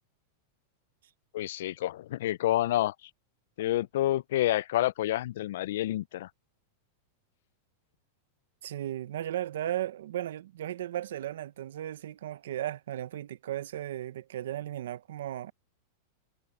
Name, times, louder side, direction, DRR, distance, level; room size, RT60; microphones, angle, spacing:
voice 1, 1.3-3.1 3.6-6.3, left 14 dB, 65° left, 0.3 m, -29 dB
voice 2, 8.6-15.5, right 12 dB, 85° right, 0.9 m, -35 dB
supercardioid pair, 165°, 0 cm